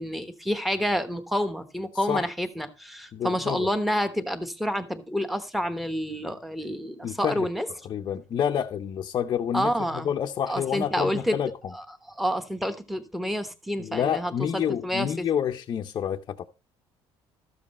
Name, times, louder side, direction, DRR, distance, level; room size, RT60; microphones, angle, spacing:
voice 1, 0.0-7.7 9.5-10.1 10.5-11.4 11.7-15.3, equal, ahead, 1.1 m, -29 dB
voice 2, 3.1-3.7 7.0-7.5 7.8-9.7 10.0-11.5 13.8-16.5, left 9 dB, 40° left, 0.7 m, -28 dB
13.0 x 7.6 x 4.2 m
cardioid pair, 155°, 10 cm